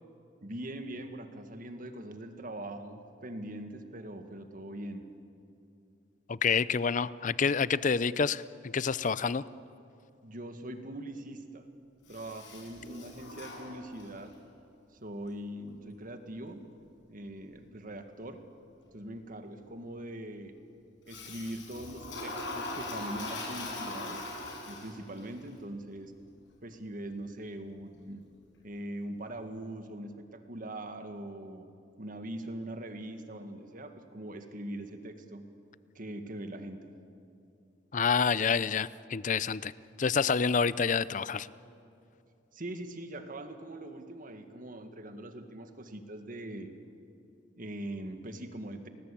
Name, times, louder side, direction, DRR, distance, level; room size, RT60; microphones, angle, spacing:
voice 1, 0.4-5.0 10.2-11.7 12.1-14.4 14.9-16.6 17.1-18.4 18.9-20.5 21.0-24.3 24.6-26.1 26.6-28.2 28.6-31.7 32.0-35.4 36.0-36.9 42.5-46.7 47.6-48.9, right 1 dB, 50° right, 7 dB, 1.9 m, -42 dB
voice 2, 6.3-8.4 8.7-9.4 37.9-39.7 40.0-41.5, left 5 dB, 45° left, 18 dB, 0.6 m, -28 dB
Toilet flush, 12.1-14.3 21.1-25.2, left 2 dB, 80° left, 6.8 m, -40 dB
30.0 x 19.5 x 8.6 m, 2.6 s
head